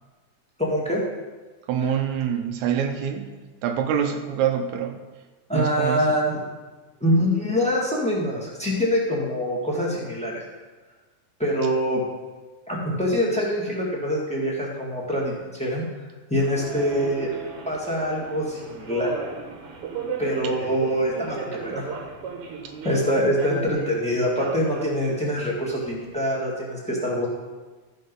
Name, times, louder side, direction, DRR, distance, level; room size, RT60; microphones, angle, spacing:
voice 1, 0.6-1.0 5.5-6.4 7.0-10.4 11.4-12.0 12.7-15.8 16.3-17.3 17.6-19.1 20.2-21.8 22.8-27.3, equal, 5° left, -4 dB, 1.1 m, -24 dB
voice 2, 1.7-5.0 5.5-6.0 22.6-22.7, right 8 dB, 70° right, 6 dB, 2.1 m, -26 dB
Subway metro underground, 16.4-26.1, right 5 dB, 55° right, 1.9 m, -35 dB
14.0 x 5.2 x 5.4 m, 1.3 s
omnidirectional pair, 3.6 m